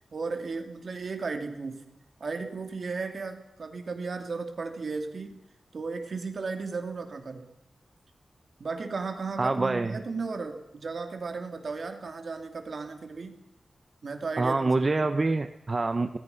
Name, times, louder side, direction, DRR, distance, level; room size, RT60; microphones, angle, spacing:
voice 1, 0.1-1.9 2.2-5.4 5.7-7.5 8.6-13.4 14.0-15.1, right 4 dB, 55° right, 6 dB, 3.0 m, -35 dB
voice 2, 9.4-10.0 14.4-16.2, right 3 dB, 30° right, 8 dB, 0.9 m, -26 dB
26.0 x 19.0 x 5.8 m, 0.88 s
wide cardioid pair, 155°, 0 cm